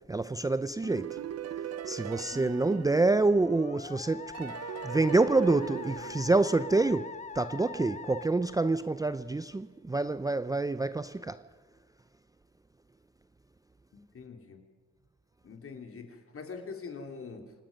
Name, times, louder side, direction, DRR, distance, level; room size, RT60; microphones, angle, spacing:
voice 1, 0.1-1.2 1.9-4.6 4.8-11.4, right 3 dB, 10° right, 0.5 m, -27 dB
sound 1, 0.8-3.7 4.3-7.2, right 10 dB, 55° right, 0.8 m, -40 dB
Musical instrument, 2.3-9.2, left 5 dB, 25° left, 0.8 m, -43 dB
voice 2, 13.9-14.6 15.4-17.5, left 5 dB, 45° left, 3.3 m, -44 dB
28.0 x 18.0 x 5.4 m
cardioid pair, 90°, 30 cm